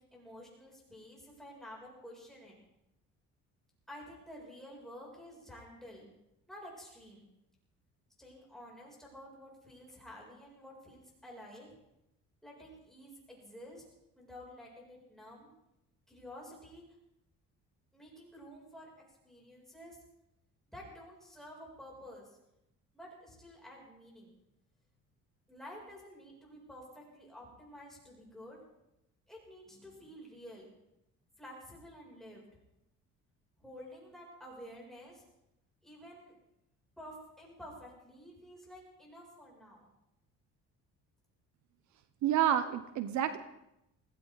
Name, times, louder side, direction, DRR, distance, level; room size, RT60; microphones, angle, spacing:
voice 1, 0.0-2.6 3.9-6.1 6.5-7.3 8.2-11.7 12.4-13.8 14.2-15.5 16.1-16.8 17.9-20.0 20.7-22.4 22.9-24.3 25.5-28.6 29.3-30.7 31.4-32.4 33.6-35.2 35.8-36.3 37.0-39.9, equal, ahead, -4 dB, 7.4 m, -51 dB
voice 2, 42.2-43.4, right 10 dB, 75° right, 11 dB, 1.0 m, -29 dB
21.0 x 16.0 x 4.1 m, 0.86 s
cardioid pair, 115°, 30 cm